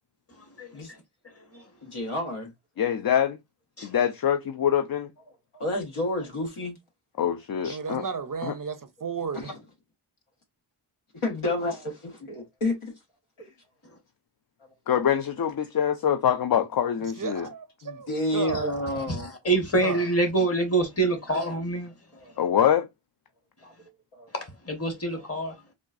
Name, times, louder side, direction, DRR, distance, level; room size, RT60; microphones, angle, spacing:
voice 1, 1.8-2.5 5.5-6.8 7.6-7.8 9.4-9.5 11.2-12.9 13.4-13.5 17.8-19.3 22.1-22.5 23.6-23.7 24.1-24.3 25.1-25.2, left 1 dB, 80° left, 1.3 m, -30 dB
voice 2, 2.8-3.4 3.8-5.1 7.2-8.0 8.4-8.5 14.9-17.5 22.4-22.9, left 9 dB, 50° left, 0.4 m, -24 dB
voice 3, 7.6-9.5 17.0-18.7 19.8-20.1, right 6 dB, 40° right, 0.5 m, -33 dB
voice 4, 19.1-21.9 24.3-25.5, right 2 dB, 30° left, 1.1 m, -26 dB
3.7 x 2.3 x 2.4 m
wide cardioid pair, 55°, 50 cm